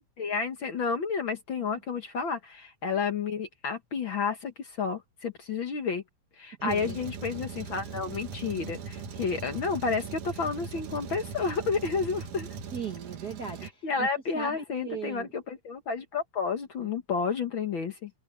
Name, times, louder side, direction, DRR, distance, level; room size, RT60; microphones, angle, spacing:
voice 1, 0.2-6.0 6.4-12.5 13.8-18.1, left 5 dB, 50° left, 1.7 m, -31 dB
voice 2, 6.6-7.0 12.7-14.1 14.3-15.3, right 6 dB, 50° right, 1.2 m, -37 dB
Truck, 6.7-13.7, right 5 dB, 80° right, 3.4 m, -40 dB
open air
omnidirectional pair, 3.5 m